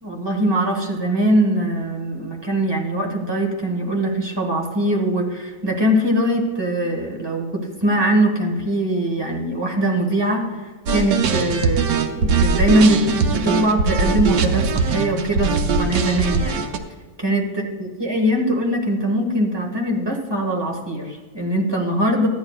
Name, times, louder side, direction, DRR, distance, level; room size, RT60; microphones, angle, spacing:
voice 1, 0.0-10.5 10.9-16.6 17.2-22.3, right 1 dB, 20° right, 0 dB, 1.3 m, -21 dB
sound 1, 10.9-16.8, right 4 dB, 85° right, 1.2 m, -20 dB
13.5 x 9.4 x 2.4 m, 1.3 s
omnidirectional pair, 1.6 m